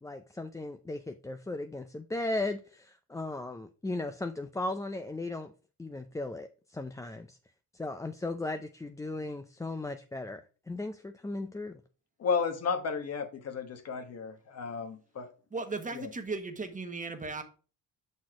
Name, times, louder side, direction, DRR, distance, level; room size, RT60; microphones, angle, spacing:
voice 1, 0.0-5.5 5.8-7.4 7.7-11.8, left 2 dB, 10° left, 0.4 m, -37 dB
voice 2, 12.2-15.3 15.9-16.1, left 5 dB, 55° left, 1.3 m, -33 dB
voice 3, 15.5-17.4, right 3 dB, 25° right, 1.2 m, -36 dB
6.2 x 4.3 x 4.8 m
cardioid pair, 90°, 30 cm